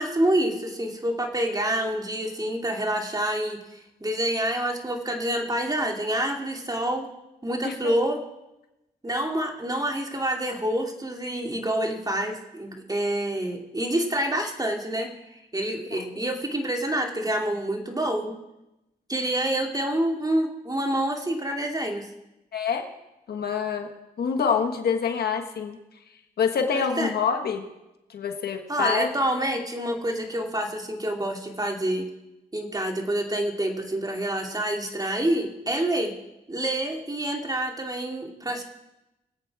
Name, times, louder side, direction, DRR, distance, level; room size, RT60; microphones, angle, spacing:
voice 1, 0.0-7.1 7.4-8.2 9.0-15.1 15.5-18.4 19.1-22.1 26.7-27.1 28.7-32.1 32.5-36.1 36.5-38.6, right 1 dB, 25° right, 2 dB, 2.6 m, -27 dB
voice 2, 22.5-22.8 23.3-23.9 24.2-25.8 26.4-27.7 28.1-29.1, left 6 dB, 90° left, 5 dB, 1.4 m, -26 dB
22.0 x 8.6 x 4.8 m, 0.94 s
cardioid pair, 65°, 16 cm